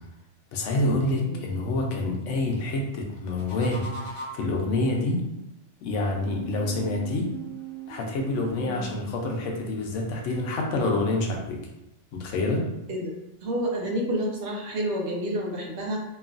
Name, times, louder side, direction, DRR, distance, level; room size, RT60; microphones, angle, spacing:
voice 1, 0.5-4.1 4.3-5.2 5.8-7.3 7.9-11.6 12.1-12.6, left 2 dB, 75° left, 1 dB, 0.9 m, -27 dB
sound 1, 3.1-4.6 6.0-8.9, right 5 dB, 40° left, 0.5 m, -40 dB
voice 2, 13.4-16.0, equal, 65° right, 0 dB, 0.8 m, -29 dB
3.0 x 2.4 x 2.4 m, 0.92 s
omnidirectional pair, 1.3 m